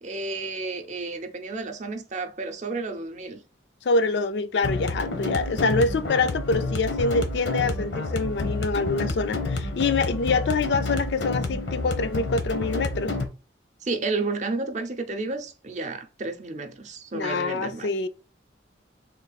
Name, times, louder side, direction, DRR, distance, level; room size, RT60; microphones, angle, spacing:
voice 1, 0.0-3.4 13.8-17.9, right 3 dB, 40° right, 0.6 m, -31 dB
voice 2, 3.8-13.1 17.1-18.1, left 3 dB, 65° left, 0.4 m, -25 dB
sound 1, 4.6-13.3, left 2 dB, 85° left, 0.9 m, -29 dB
3.7 x 2.4 x 3.9 m
head